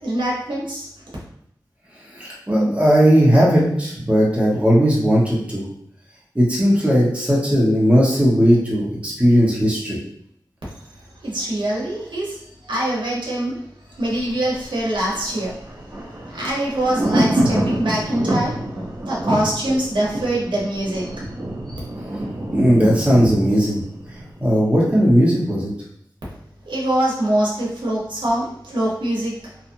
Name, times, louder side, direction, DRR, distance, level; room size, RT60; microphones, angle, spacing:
voice 1, 0.0-0.9 11.2-15.6 16.3-18.6 19.0-21.2 21.7-21.8 26.6-29.6, right 1 dB, 90° right, -5 dB, 0.9 m, -24 dB
voice 2, 2.1-5.6 6.3-10.0 22.5-23.8 24.4-25.7, equal, 15° right, -5 dB, 1.0 m, -17 dB
Thunder, 14.0-25.0 25.3-25.4, right 1 dB, 40° right, 0.8 m, -26 dB
2.8 x 2.4 x 2.6 m, 0.70 s
wide cardioid pair, 80°, 8 cm